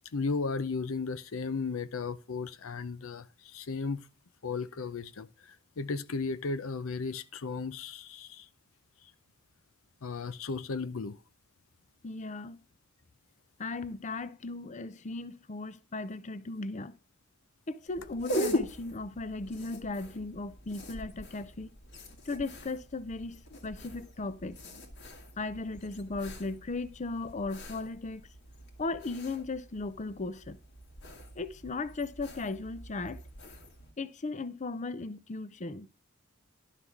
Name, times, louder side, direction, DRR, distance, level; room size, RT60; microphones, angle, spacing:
voice 1, 0.1-4.1 4.4-8.5 10.0-11.2, left 4 dB, 75° left, 0.6 m, -35 dB
voice 2, 12.0-12.6 13.6-16.9 17.7-21.7 22.3-24.6 25.4-28.3 28.8-30.6 31.4-33.2 34.0-35.9, left 3 dB, 35° left, 0.6 m, -37 dB
sound 1, 17.9-33.9, left 1 dB, 60° left, 1.9 m, -41 dB
11.5 x 5.9 x 4.6 m
head